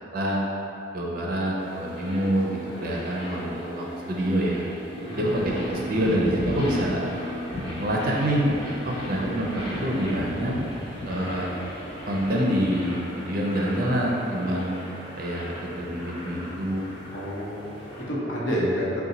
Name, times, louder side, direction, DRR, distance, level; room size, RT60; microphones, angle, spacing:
voice 1, 0.9-4.6 5.1-7.0 7.8-8.4 8.8-10.6 11.1-11.5 12.1-14.7 15.2-16.9, equal, 45° right, -3 dB, 0.5 m, -26 dB
sound 1, 1.6-18.0, equal, 30° left, 0.8 m, -35 dB
voice 2, 17.1-19.0, equal, 75° left, -6 dB, 0.9 m, -29 dB
3.9 x 2.2 x 4.1 m, 2.8 s
head